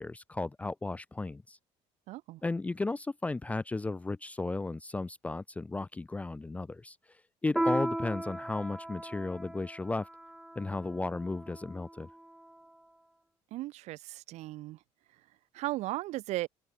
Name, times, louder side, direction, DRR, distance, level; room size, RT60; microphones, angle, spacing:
voice 1, 0.0-1.6 2.4-7.0 7.4-10.1 10.6-12.1, left 3 dB, 10° left, 0.5 m, -34 dB
voice 2, 2.1-2.4 13.5-14.8 15.5-16.5, right 17 dB, 70° right, 3.1 m, -36 dB
Piano, 7.6-12.5, right 1 dB, 5° right, 2.0 m, -36 dB
cardioid pair, 125°, 12 cm